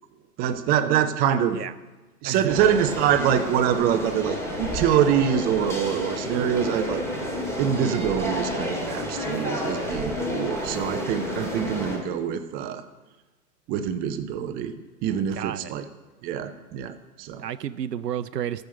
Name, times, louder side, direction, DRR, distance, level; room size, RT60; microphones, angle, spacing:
voice 1, 0.4-1.6 2.2-7.0 7.6-12.8 13.7-14.8 15.0-15.8 16.2-17.4, right 9 dB, 20° right, 10 dB, 0.5 m, -25 dB
voice 2, 2.2-2.6 14.8-14.9 15.3-15.7 17.4-18.7, right 10 dB, 80° right, 12 dB, 0.6 m, -31 dB
sound 1, 2.5-12.0, equal, 5° left, 2.6 m, -30 dB
13.5 x 6.5 x 6.9 m, 1.2 s
figure-of-eight pair, 110°, 47 cm